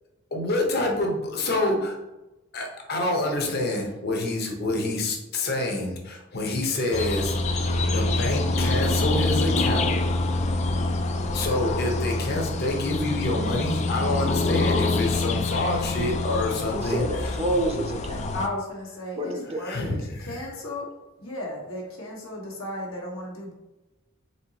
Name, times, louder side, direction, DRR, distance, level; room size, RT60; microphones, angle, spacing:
voice 1, 0.3-2.0 2.5-7.6 7.9-9.9 11.3-17.0 19.6-20.4, left 2 dB, 50° left, 1 dB, 0.9 m, -27 dB
sound 1, 6.9-18.5, left 2 dB, 35° left, 0.3 m, -26 dB
voice 2, 16.7-18.3 19.2-19.6, right 1 dB, 30° right, 2 dB, 0.6 m, -28 dB
voice 3, 18.3-20.9 21.2-23.5, left 1 dB, 85° left, -3 dB, 1.3 m, -35 dB
4.3 x 3.9 x 2.9 m, 1.0 s
head